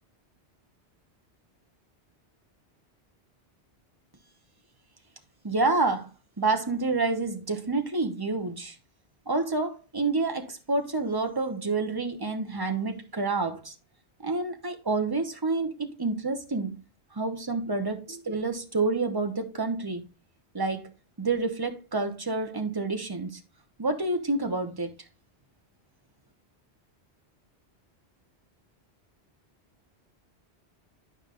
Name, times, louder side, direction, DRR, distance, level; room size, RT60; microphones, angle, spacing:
voice 1, 5.4-6.1 6.4-8.7 9.3-13.7 14.2-16.8 17.1-20.1 20.5-20.9 21.2-23.4 23.8-24.9, right 3 dB, 20° right, 0.9 m, -28 dB
11.0 x 5.3 x 2.4 m
omnidirectional pair, 1.1 m